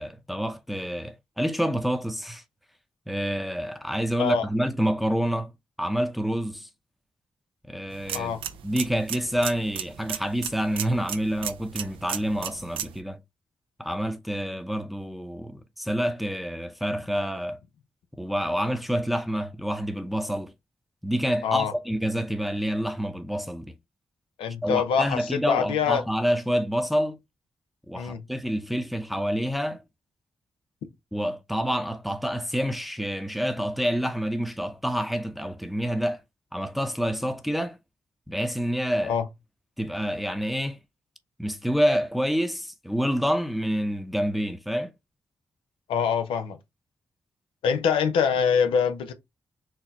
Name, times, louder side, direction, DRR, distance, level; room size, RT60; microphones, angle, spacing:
voice 1, 0.0-2.4 3.1-5.5 5.8-6.7 7.7-8.4 8.6-13.2 13.8-17.6 18.2-20.5 21.0-23.7 24.6-27.2 27.9-29.8 31.1-36.2 36.5-37.8 38.3-39.2 39.8-40.8 41.4-44.9, equal, ahead, 0.7 m, -28 dB
sound 1, 7.9-13.0, right 9 dB, 85° right, 0.5 m, -36 dB
voice 2, 21.4-21.7 24.4-26.0 27.9-28.2 39.1-39.3 45.9-46.6 47.6-49.1, left 7 dB, 90° left, 0.6 m, -24 dB
4.3 x 2.1 x 4.0 m
supercardioid pair, 45°, 9 cm